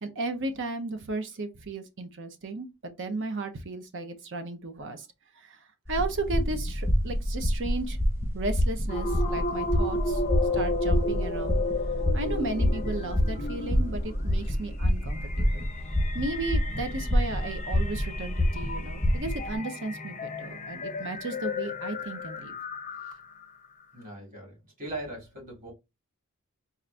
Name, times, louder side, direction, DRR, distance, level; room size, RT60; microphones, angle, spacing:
voice 1, 0.0-5.1 5.4-8.0 8.3-10.2 10.5-11.6 12.1-15.7 16.1-22.5, right 2 dB, 55° right, 0.8 m, -35 dB
sound 1, 5.9-19.6, equal, 10° right, 1.0 m, -27 dB
sound 2, 8.9-23.4, left 2 dB, 35° left, 0.5 m, -34 dB
voice 2, 23.9-25.7, right 2 dB, 40° right, 2.7 m, -40 dB
4.1 x 2.5 x 3.3 m
head